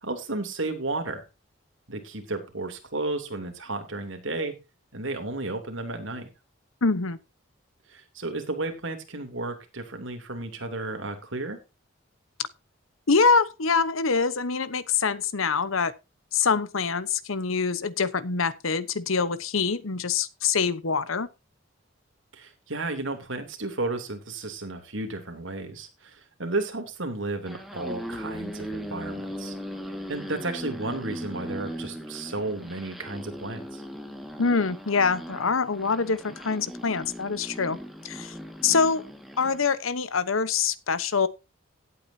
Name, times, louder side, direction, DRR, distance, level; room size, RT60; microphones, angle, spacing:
voice 1, 0.0-1.2 1.9-4.5 4.9-6.3 7.9-11.6 22.3-29.6 30.1-33.8, right 2 dB, 75° right, 3.0 m, -33 dB
voice 2, 6.8-7.2 13.1-15.9 16.3-21.3 34.4-37.8 38.0-38.3 38.6-39.0 39.4-41.3, left 5 dB, 90° left, 1.0 m, -25 dB
sound 1, 27.4-39.6, equal, ahead, 1.8 m, -38 dB
17.0 x 8.6 x 2.8 m
head